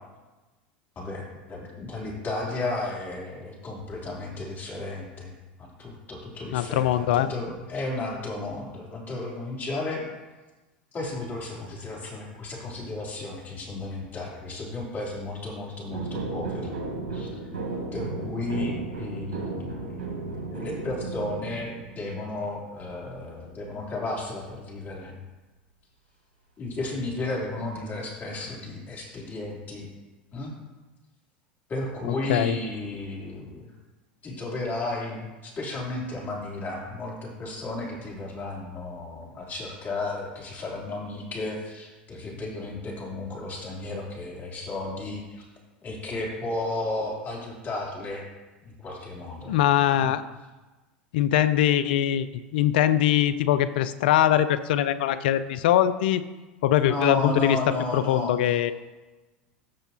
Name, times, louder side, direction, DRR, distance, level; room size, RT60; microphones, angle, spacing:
voice 1, 0.9-5.3 5.6-10.0 10.9-16.8 17.1-17.3 17.9-25.1 26.6-29.9 30.3-30.5 31.7-33.7 34.2-45.4 45.8-48.2 48.6-49.5 49.9-50.1 56.8-58.5, left 2 dB, 35° left, -3 dB, 3.4 m, -33 dB
voice 2, 6.5-7.3 32.3-32.6 49.5-50.2 51.1-52.3 52.5-56.2 56.6-57.6 57.9-58.7, left 11 dB, 70° left, 13 dB, 0.5 m, -22 dB
sound 1, 15.9-22.3 27.3-27.8, right 3 dB, 80° right, 2.3 m, -35 dB
14.0 x 6.6 x 2.9 m, 1.2 s
hypercardioid pair, 85°, 5 cm